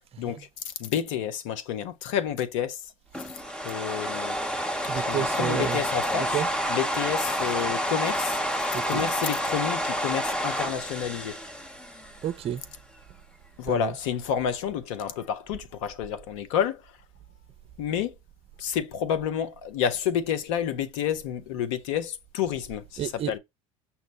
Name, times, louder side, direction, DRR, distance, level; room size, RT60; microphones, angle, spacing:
voice 1, 0.2-2.9 3.6-4.4 4.9-6.4 6.7-8.4 8.9-11.4 13.6-16.8 17.8-18.1 18.6-23.0 23.3-23.4, left 9 dB, 70° left, 0.8 m, -29 dB
sound 1, 3.1-12.4, equal, 5° left, 0.7 m, -29 dB
voice 2, 4.8-5.8 6.1-6.5 8.7-9.1 12.2-12.7 13.7-14.0 23.0-23.4, right 10 dB, 35° right, 0.5 m, -31 dB
5.8 x 2.1 x 3.9 m
hypercardioid pair, 75°, 17 cm